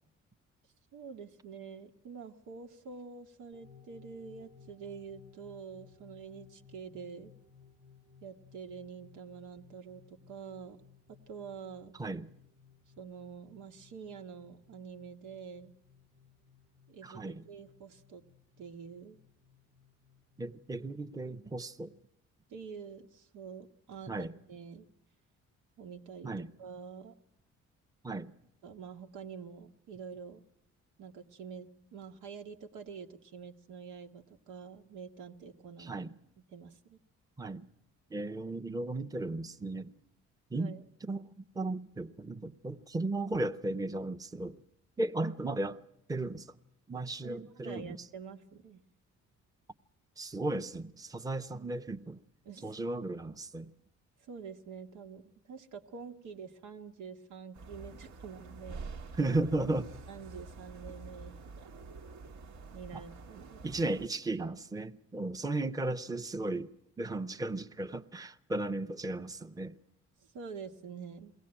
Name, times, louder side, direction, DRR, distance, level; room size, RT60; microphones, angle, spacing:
voice 1, 0.9-7.3 8.2-10.8 11.1-11.9 13.0-15.7 16.9-18.2 18.6-19.2 22.5-24.9 25.8-26.3 26.6-27.1 28.6-30.4 31.0-35.9 36.5-37.0 40.5-40.8 47.2-48.8 52.4-52.8 54.2-58.9 60.1-61.7 62.7-63.6 70.3-71.3, right 6 dB, 90° right, 1.4 m, -47 dB
sound 1, 3.5-20.7, left 6 dB, 50° right, 1.3 m, -61 dB
voice 2, 17.0-17.4 20.4-21.9 24.1-24.3 26.2-26.5 28.0-28.3 35.8-36.1 37.4-37.7 38.1-39.9 40.5-40.7 41.0-44.6 45.0-45.8 46.1-46.5 46.9-48.0 50.2-52.2 52.6-53.7 59.2-60.0 62.9-63.0 63.6-66.7 67.0-69.7, right 2 dB, 10° right, 0.8 m, -35 dB
sound 2, 57.5-64.1, right 3 dB, 70° right, 1.2 m, -47 dB
22.5 x 17.0 x 8.8 m
cardioid pair, 90°, 30 cm